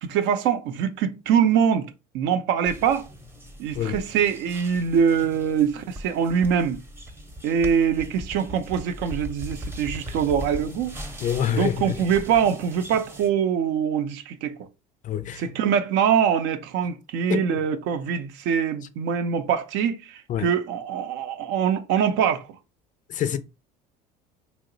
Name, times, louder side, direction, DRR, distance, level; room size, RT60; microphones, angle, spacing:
voice 1, 0.0-3.1 3.6-6.8 7.4-10.9 11.5-14.5 15.4-22.5, right 8 dB, 60° right, 0.5 m, -23 dB
sound 1, 2.6-13.3, equal, 10° right, 0.7 m, -39 dB
voice 2, 11.2-12.0 15.0-15.6 17.3-17.4 20.3-20.5 23.1-23.4, left 10 dB, 40° left, 0.4 m, -26 dB
2.9 x 2.0 x 3.8 m
hypercardioid pair, 75°, 20 cm